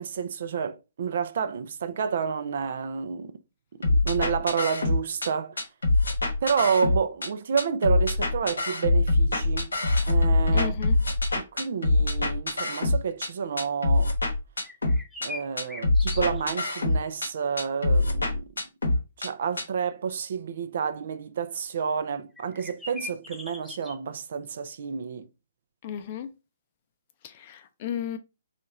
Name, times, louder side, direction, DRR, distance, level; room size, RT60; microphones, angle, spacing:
voice 1, 0.0-3.4 3.8-5.6 6.4-9.7 10.1-10.7 11.3-14.1 15.2-18.5 19.2-25.3, right 6 dB, 60° right, 0.4 m, -30 dB
sound 1, 3.8-5.3 5.6-7.3 7.6-13.3 13.6-15.3 15.6-17.3 17.6-19.3 19.6-19.7, left 2 dB, 80° left, 0.8 m, -24 dB
voice 2, 10.5-11.0 25.8-26.3 27.2-28.2, left 9 dB, 40° left, 0.5 m, -34 dB
sound 2, 14.6-16.7 17.0-17.1 22.4-24.0, left 3 dB, ahead, 0.9 m, -40 dB
2.9 x 2.4 x 4.1 m
figure-of-eight pair, 130°, 0 cm